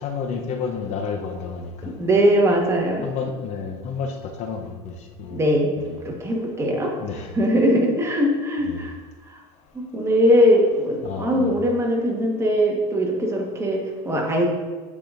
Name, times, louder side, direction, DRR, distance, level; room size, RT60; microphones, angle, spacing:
voice 1, 0.0-1.9 3.0-4.1 4.4-4.9 5.2-5.4 5.8-6.0 7.0-7.3 8.7-8.8 11.0-11.5, left 5 dB, 50° left, 4 dB, 0.7 m, -30 dB
voice 2, 1.8-3.0 5.3-5.7 6.0-6.9 7.3-8.9 9.9-14.5, equal, 20° right, 0 dB, 1.3 m, -20 dB
9.0 x 4.8 x 2.5 m, 1.4 s
supercardioid pair, 100°, 14 cm